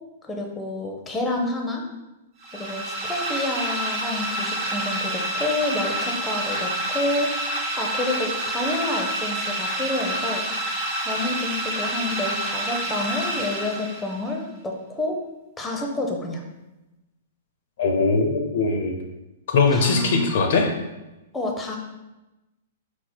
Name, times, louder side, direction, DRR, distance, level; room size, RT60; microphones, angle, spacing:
voice 1, 0.2-1.8 2.5-15.2 15.6-16.5 19.7-20.4 21.3-21.8, left 2 dB, 10° left, 1 dB, 0.6 m, -29 dB
sound 1, 2.4-14.3, right 1 dB, 30° right, 0.8 m, -28 dB
voice 2, 17.8-18.9 19.5-20.7, left 4 dB, 55° left, 4 dB, 0.4 m, -20 dB
4.2 x 2.0 x 4.2 m, 1.0 s
figure-of-eight pair, 110°, 0 cm